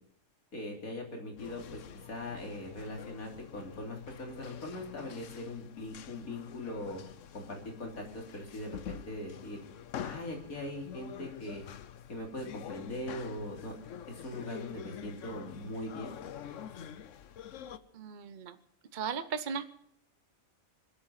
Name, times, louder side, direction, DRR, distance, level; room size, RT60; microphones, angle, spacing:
voice 1, 0.5-1.8 2.1-7.0 7.3-9.6 10.0-11.6 12.1-13.7 14.1-16.1, left 1 dB, 80° left, 2 dB, 3.6 m, -41 dB
sound 1, 1.4-17.8, left 9 dB, 65° left, 1.1 m, -46 dB
voice 2, 17.9-18.5 18.9-19.7, right 6 dB, 45° right, 11 dB, 0.7 m, -36 dB
26.0 x 8.8 x 5.7 m, 0.70 s
omnidirectional pair, 1.5 m